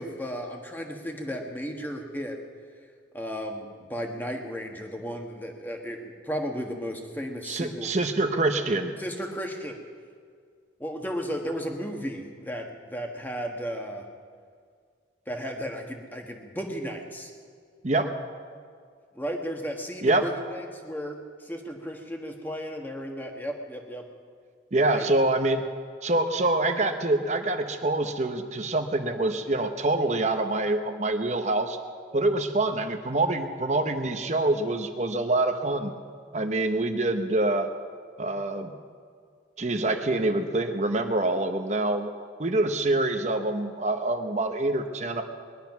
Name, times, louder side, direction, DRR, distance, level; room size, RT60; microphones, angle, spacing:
voice 1, 0.0-2.4 3.1-7.9 9.0-9.8 10.8-14.1 15.3-17.3 19.1-24.0 24.9-25.1, equal, 10° left, 2 dB, 1.4 m, -34 dB
voice 2, 7.5-9.0 17.8-18.1 20.0-20.3 24.7-25.6 26.0-31.8 32.1-35.9 36.3-37.7 38.2-38.7 39.6-42.1 42.4-45.2, right 2 dB, 40° right, 7 dB, 0.8 m, -25 dB
20.5 x 11.5 x 5.9 m, 2.1 s
head